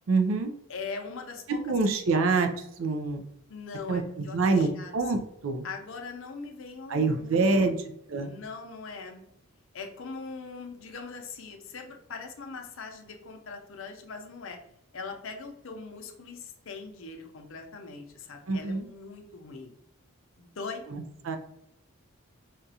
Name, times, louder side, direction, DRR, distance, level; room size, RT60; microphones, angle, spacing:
voice 1, 0.1-0.5 1.5-2.5 2.8-3.2 3.9-5.7 6.9-7.8 8.1-8.3 18.5-18.9 20.9-21.4, right 3 dB, 70° right, 6 dB, 0.4 m, -26 dB
voice 2, 0.7-1.6 3.5-4.9 5.6-7.9 8.2-9.2 9.7-14.6 14.9-19.7 20.4-20.8, left 4 dB, 70° left, 4 dB, 0.6 m, -41 dB
5.0 x 2.3 x 2.7 m, 0.78 s
head